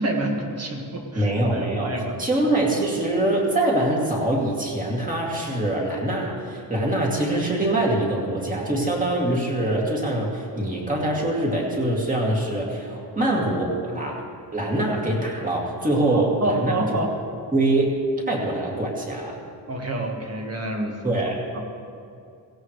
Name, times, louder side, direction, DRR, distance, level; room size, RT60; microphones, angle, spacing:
voice 1, 0.0-2.3 13.2-13.4 16.1-17.1 19.7-20.9 21.5-21.6, right 1 dB, 35° right, 1 dB, 1.7 m, -28 dB
voice 2, 1.1-14.2 14.5-16.7 17.5-19.4 21.0-21.4, right 1 dB, 20° right, -2 dB, 2.4 m, -24 dB
17.0 x 16.5 x 3.2 m, 2.5 s
wide cardioid pair, 155°, 43 cm